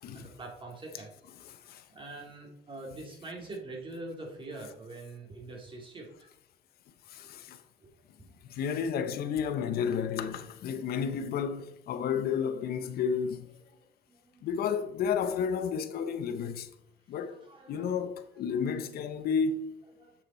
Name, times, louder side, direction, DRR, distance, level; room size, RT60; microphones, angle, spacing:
voice 1, 0.1-1.1 1.9-6.3 7.2-7.3 7.8-7.9 10.7-10.9 13.8-14.5 17.3-18.0 18.5-18.8 20.0-20.1, right 2 dB, 30° right, 2.3 m, -45 dB
voice 2, 7.1-7.6 8.5-13.5 14.4-16.7 17.1-17.4 17.7-19.8, left 6 dB, 65° left, 0.9 m, -31 dB
7.3 x 6.5 x 4.4 m
cardioid pair, 110°, 17 cm